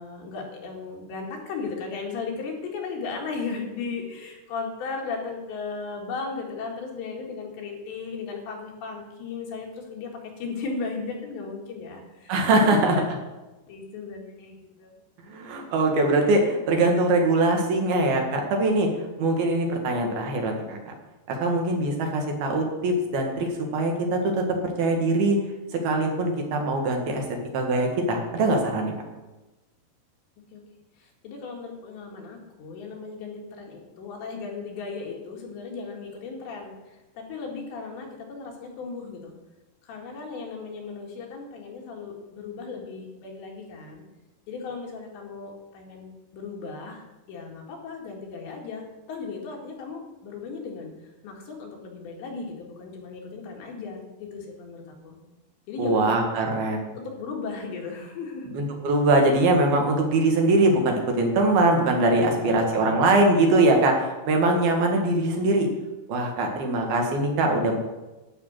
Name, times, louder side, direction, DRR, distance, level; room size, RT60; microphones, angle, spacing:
voice 1, 0.0-10.1 10.4-13.1 13.7-15.0 19.8-19.9 30.5-30.6 31.0-39.3 39.8-44.0 44.5-50.9 51.2-55.2 55.7-56.1 57.0-58.6 62.2-63.0, left 4 dB, 85° left, 0 dB, 4.3 m, -36 dB
voice 2, 12.3-13.0 15.3-18.9 19.2-20.9 21.3-23.5 23.7-25.4 25.7-27.2 27.5-28.9 55.8-56.9 58.5-65.7 66.1-67.8, right 2 dB, 65° right, 2 dB, 3.3 m, -22 dB
12.0 x 6.2 x 8.8 m, 1.1 s
omnidirectional pair, 5.0 m